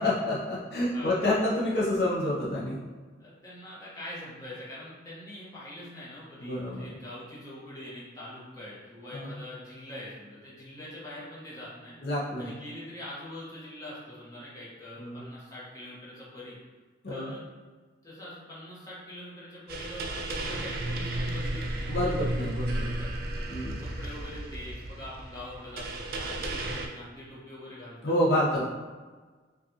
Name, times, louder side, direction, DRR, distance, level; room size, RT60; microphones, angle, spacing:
voice 1, 0.0-2.8 6.4-6.8 9.1-9.3 12.0-12.5 15.0-15.2 17.0-17.3 21.9-22.9 23.5-23.8 28.0-28.6, left 1 dB, 60° left, -6 dB, 0.6 m, -28 dB
voice 2, 3.2-12.0 12.4-16.6 17.1-17.4 18.0-23.1 23.8-28.1, left 1 dB, 20° left, -9 dB, 1.1 m, -44 dB
sound 1, 19.7-26.9, right 1 dB, 55° right, 0.4 m, -33 dB
4.9 x 2.4 x 2.8 m, 1.4 s
head